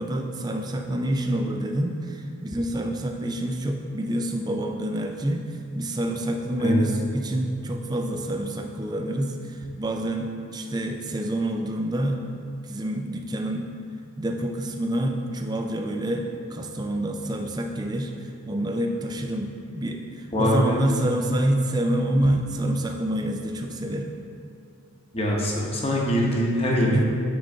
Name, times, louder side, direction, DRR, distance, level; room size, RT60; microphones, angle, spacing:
voice 1, 0.0-12.2 12.6-13.7 14.2-24.1 26.7-27.0, right 1 dB, 20° right, 4 dB, 0.3 m, -27 dB
voice 2, 20.3-20.9 25.1-27.0, equal, 25° left, -3 dB, 0.8 m, -23 dB
8.9 x 3.7 x 3.8 m, 2.4 s
head